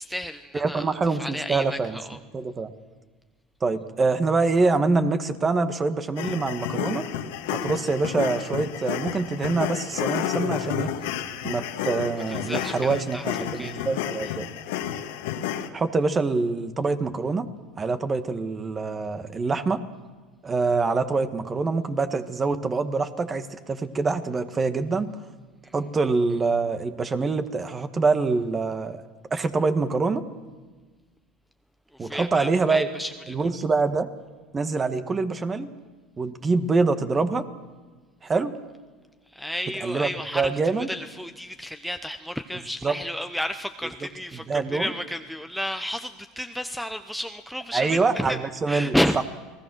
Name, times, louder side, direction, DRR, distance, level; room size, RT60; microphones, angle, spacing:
voice 1, 0.0-2.2 12.3-13.2 13.5-13.7 25.6-25.7 31.9-33.3 39.3-40.5 40.8-48.4 48.7-49.2, equal, ahead, 7 dB, 0.8 m, -31 dB
voice 2, 0.5-2.0 2.3-2.7 3.6-7.0 7.5-10.9 11.4-14.5 15.7-17.5 17.8-19.8 20.4-25.1 25.7-29.0 29.3-30.2 32.0-32.9 33.3-34.1 34.5-35.7 36.2-37.5 38.2-38.5 39.8-40.9 42.8-43.0 44.5-44.9 47.7-48.9, right 4 dB, 25° right, 9 dB, 1.7 m, -25 dB
sound 1, 6.2-15.7, left 10 dB, 80° left, 1.9 m, -31 dB
29.0 x 19.5 x 6.4 m, 1.4 s
supercardioid pair, 100°, 0 cm